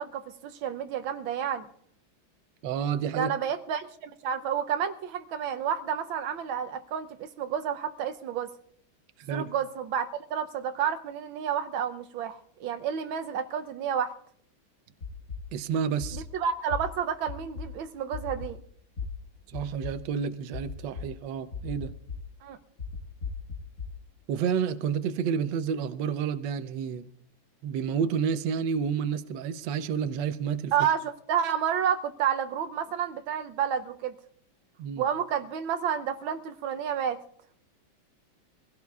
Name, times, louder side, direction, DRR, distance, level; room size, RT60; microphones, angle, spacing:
voice 1, 0.0-1.7 3.1-8.5 9.3-14.1 16.1-18.6 22.4-22.6 30.7-34.1 35.0-37.2, right 8 dB, 85° right, 1.5 m, -30 dB
voice 2, 2.6-3.3 9.2-9.5 15.5-16.3 19.5-21.9 24.3-27.1 27.6-30.7 34.8-35.0, right 7 dB, 70° right, 1.4 m, -30 dB
sound 1, 15.0-15.4 16.0-16.2 16.7-16.8 17.3-17.6 18.1-18.5 19.0-19.1 19.5-19.9 20.5-21.0 21.5-22.2 22.8-23.9, left 5 dB, 50° left, 2.1 m, -36 dB
24.0 x 16.5 x 2.4 m
omnidirectional pair, 2.1 m